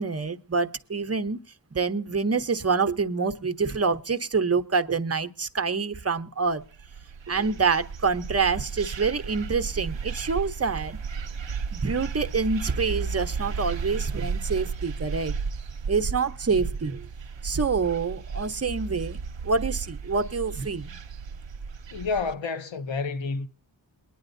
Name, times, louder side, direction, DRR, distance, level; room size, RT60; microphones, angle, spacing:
voice 1, 0.0-1.4 1.7-6.6 7.3-11.0 11.7-15.3 15.9-17.1 17.4-19.2 19.4-21.0, right 4 dB, 30° right, 0.7 m, -26 dB
sound 1, 6.6-22.3, right 5 dB, 70° right, 0.7 m, -34 dB
voice 2, 21.9-23.5, left 4 dB, 75° left, 0.8 m, -29 dB
22.0 x 9.9 x 2.6 m
wide cardioid pair, 60°, 46 cm